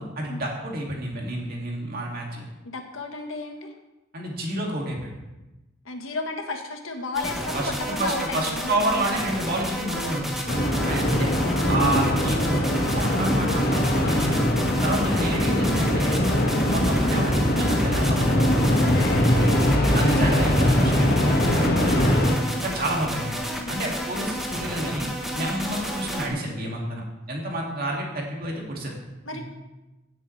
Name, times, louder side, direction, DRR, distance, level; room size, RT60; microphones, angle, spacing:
voice 1, 0.0-2.5 4.1-5.1 7.5-10.5 10.8-11.3 11.7-12.6 12.9-14.4 14.8-16.2 16.7-19.3 19.9-21.8 22.6-23.4 23.7-25.1 25.4-29.0, right 1 dB, 45° right, -1 dB, 2.4 m, -29 dB
voice 2, 2.6-3.7 5.8-8.7 10.9-11.7 16.3-16.5 22.3-22.8 23.6-23.8 25.3-25.5 29.2-29.4, left 2 dB, 80° left, 4 dB, 1.4 m, -34 dB
sound 1, 7.1-26.3, equal, ahead, 1.2 m, -31 dB
sound 2, 10.5-22.4, left 1 dB, 50° left, 1.7 m, -22 dB
16.5 x 7.6 x 3.3 m, 1.0 s
head